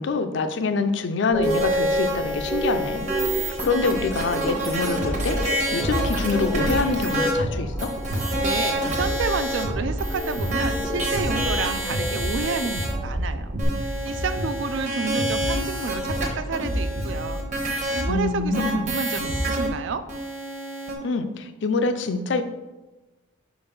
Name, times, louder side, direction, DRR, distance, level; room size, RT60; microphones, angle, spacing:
voice 1, 0.0-3.1 3.3-7.9 18.1-18.9 21.0-22.4, left 4 dB, 60° left, 9 dB, 0.4 m, -25 dB
sound 1, 1.3-13.6, equal, ahead, 0.5 m, -32 dB
sound 2, 1.4-7.3 7.8-9.6 10.0-12.9 13.6-18.0 18.5-19.7 20.1-20.9, right 1 dB, 35° right, 1.0 m, -28 dB
sound 3, 5.0-19.7, equal, 80° right, 1.1 m, -31 dB
voice 2, 8.4-13.5 13.8-17.4 17.9-20.0, right 4 dB, 65° right, 11 dB, 0.4 m, -30 dB
4.8 x 3.9 x 5.2 m, 1.1 s
head